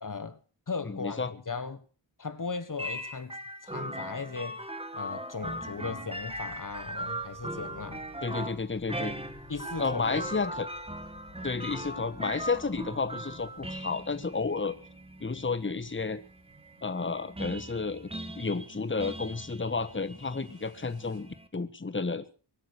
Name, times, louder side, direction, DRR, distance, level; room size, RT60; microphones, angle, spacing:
voice 1, 0.0-0.4 0.7-1.8 2.2-3.4 3.6-4.6 4.9-8.1 9.5-10.2, left 4 dB, 45° left, 1.5 m, -37 dB
voice 2, 0.8-1.3 8.2-9.1 9.8-10.7 11.4-14.8 15.2-16.2 16.8-18.1 18.3-22.2, left 4 dB, 25° left, 1.5 m, -31 dB
sound 1, 2.8-21.5, right 1 dB, 15° right, 2.0 m, -40 dB
sound 2, 6.1-16.0, left 4 dB, 80° left, 6.9 m, -56 dB
sound 3, 13.3-21.2, right 4 dB, 85° right, 4.7 m, -60 dB
24.0 x 9.2 x 6.6 m
wide cardioid pair, 65°, 44 cm